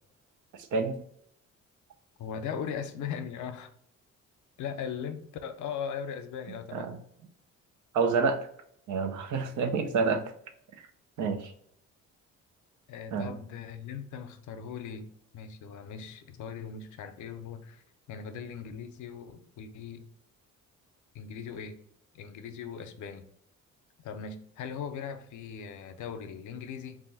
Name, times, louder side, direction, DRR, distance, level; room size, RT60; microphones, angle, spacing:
voice 1, 0.5-1.0 6.5-7.0 7.9-8.4 8.9-10.2 11.2-11.5 13.1-13.4, right 4 dB, 75° right, 6 dB, 0.7 m, -28 dB
voice 2, 2.2-3.7 4.6-6.9 12.9-15.1 15.3-17.8 18.1-20.0 21.1-21.8 22.1-23.3 24.0-27.0, left 7 dB, 75° left, 9 dB, 0.6 m, -39 dB
3.4 x 2.5 x 4.0 m, 0.66 s
cardioid pair, 90°, 30 cm